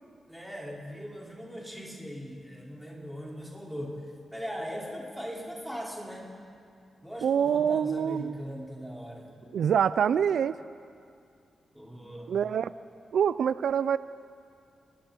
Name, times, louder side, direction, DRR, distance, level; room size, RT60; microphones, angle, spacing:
voice 1, 0.3-4.0 4.3-6.3 7.0-9.3 11.7-12.4, equal, ahead, -5 dB, 5.2 m, -39 dB
voice 2, 7.2-8.4 9.5-10.5 12.3-12.7 13.1-14.0, right 8 dB, 85° right, 15 dB, 0.4 m, -25 dB
30.0 x 20.5 x 4.5 m, 2.3 s
cardioid pair, 105°, 0 cm